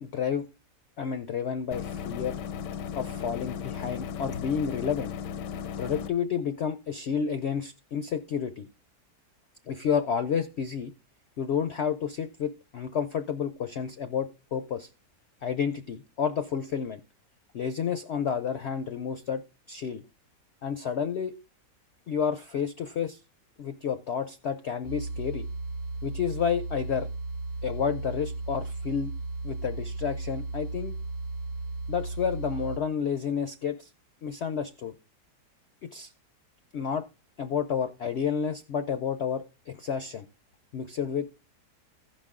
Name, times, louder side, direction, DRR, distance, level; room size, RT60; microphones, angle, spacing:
voice 1, 0.0-0.5 1.0-2.4 2.9-5.1 5.8-8.7 9.7-10.9 11.4-14.9 15.4-17.0 17.5-19.4 19.7-20.0 20.6-21.3 22.1-23.2 23.6-25.5 26.0-27.1 27.6-29.1 29.4-30.9 31.9-33.9 34.2-34.9 35.8-36.1 36.7-37.1 37.4-40.3 40.7-41.3, left 7 dB, 70° left, 10 dB, 0.6 m, -30 dB
sound 1, 1.7-6.1, left 8 dB, 90° left, 1.3 m, -36 dB
sound 2, 24.8-32.8, right 2 dB, 65° right, 1.1 m, -35 dB
15.5 x 5.3 x 3.6 m, 0.30 s
omnidirectional pair, 1.8 m